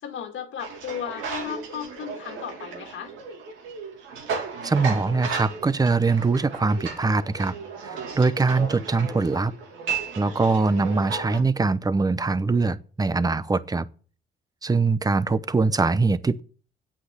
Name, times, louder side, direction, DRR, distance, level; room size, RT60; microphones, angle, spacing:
voice 1, 0.0-3.1 8.2-8.3, left 8 dB, 75° left, 1.9 m, -35 dB
sound 1, 0.6-11.4, right 5 dB, 85° right, 2.7 m, -35 dB
voice 2, 4.6-7.5 7.8-9.5 10.2-13.9 14.6-16.4, right 3 dB, 20° right, 0.7 m, -22 dB
8.6 x 8.2 x 8.0 m
cardioid pair, 90°, 20 cm